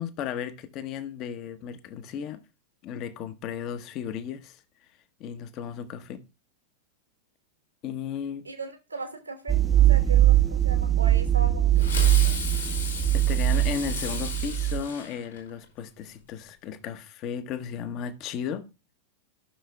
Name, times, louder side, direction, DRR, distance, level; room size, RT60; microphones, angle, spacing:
voice 1, 0.0-2.4 2.8-4.6 5.2-6.2 7.8-8.4 13.1-18.7, left 8 dB, 40° left, 0.8 m, -35 dB
voice 2, 8.4-12.4, right 3 dB, 80° right, 1.2 m, -38 dB
sound 1, 9.5-14.8, right 13 dB, 10° right, 0.6 m, -21 dB
Fireworks, 11.8-15.6, left 5 dB, 75° left, 4.4 m, -35 dB
14.0 x 6.4 x 2.3 m
figure-of-eight pair, 90°, 0 cm